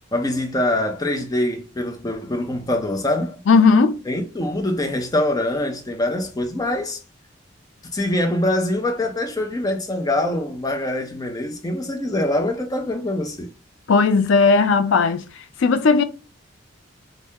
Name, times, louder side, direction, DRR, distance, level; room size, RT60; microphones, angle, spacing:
voice 1, 0.1-3.4 4.1-7.0 7.9-13.5, left 1 dB, 20° left, 0.5 m, -24 dB
voice 2, 3.5-4.0 13.9-15.2 15.6-16.0, left 4 dB, 80° left, 0.4 m, -16 dB
3.4 x 2.1 x 2.7 m
head